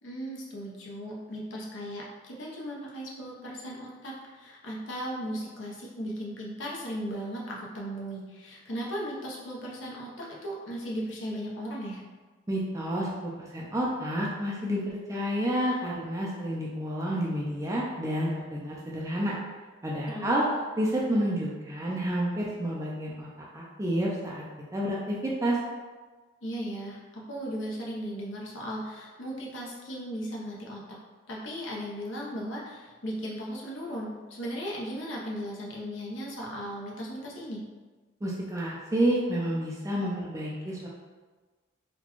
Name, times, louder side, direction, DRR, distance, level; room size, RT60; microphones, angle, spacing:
voice 1, 0.0-12.0 20.1-20.4 26.4-30.8 31.3-37.6, equal, 75° left, -4 dB, 0.8 m, -37 dB
voice 2, 12.5-14.8 15.1-19.3 19.8-20.4 20.8-23.3 23.5-24.4 24.7-25.6 38.2-40.9, equal, 15° right, -4 dB, 0.4 m, -29 dB
4.0 x 2.2 x 3.0 m, 1.3 s
head